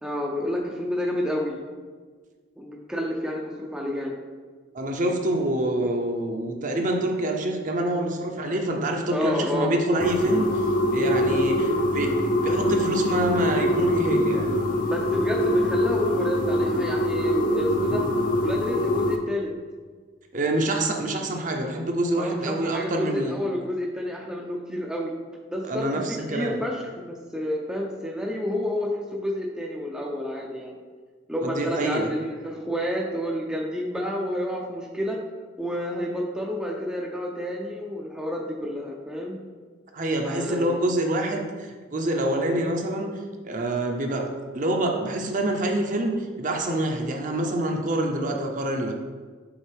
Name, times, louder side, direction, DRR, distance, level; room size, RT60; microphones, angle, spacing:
voice 1, 0.0-1.6 2.6-4.2 9.1-9.8 14.8-18.1 18.4-19.5 22.2-25.1 25.5-30.7 31.3-35.2 35.6-39.4 40.2-40.8, left 1 dB, 5° right, -2 dB, 0.4 m, -29 dB
voice 2, 4.7-14.5 20.3-23.4 25.6-26.6 31.4-32.1 39.9-43.1 43.4-44.2 44.5-48.9, right 1 dB, 40° right, 2 dB, 0.7 m, -26 dB
sound 1, 10.0-19.2, equal, 45° left, 0.5 m, -24 dB
7.2 x 4.0 x 3.4 m, 1.5 s
head